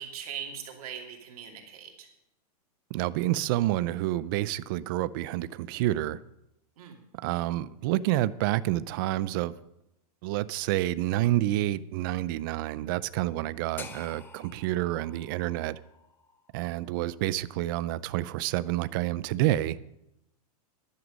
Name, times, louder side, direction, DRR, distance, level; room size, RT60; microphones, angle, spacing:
voice 1, 0.0-2.1 6.8-7.0, right 8 dB, 65° right, 2.8 m, -40 dB
voice 2, 2.9-6.2 7.2-9.6 10.2-15.8 16.5-19.8, right 15 dB, 35° right, 0.4 m, -28 dB
sound 1, 13.8-17.9, left 5 dB, 10° left, 0.6 m, -49 dB
12.5 x 11.0 x 5.3 m
supercardioid pair, 170°, 20 cm